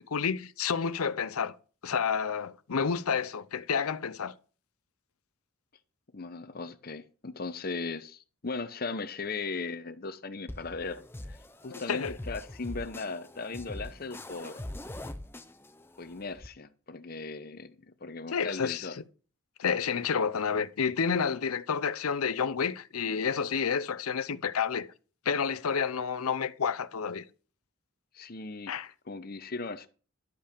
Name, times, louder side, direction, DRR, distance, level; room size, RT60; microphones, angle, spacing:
voice 1, 0.0-1.5 1.8-4.3 11.7-12.2 18.3-18.9 19.6-24.9 25.3-27.2 28.7-28.9, left 6 dB, 85° left, 0.6 m, -30 dB
voice 2, 6.1-11.4 11.6-14.6 16.0-17.8 18.0-19.0 28.1-28.7 29.1-29.9, left 3 dB, 45° left, 0.7 m, -38 dB
sound 1, 10.5-16.5, left 1 dB, 10° left, 0.5 m, -43 dB
11.5 x 5.6 x 5.1 m
head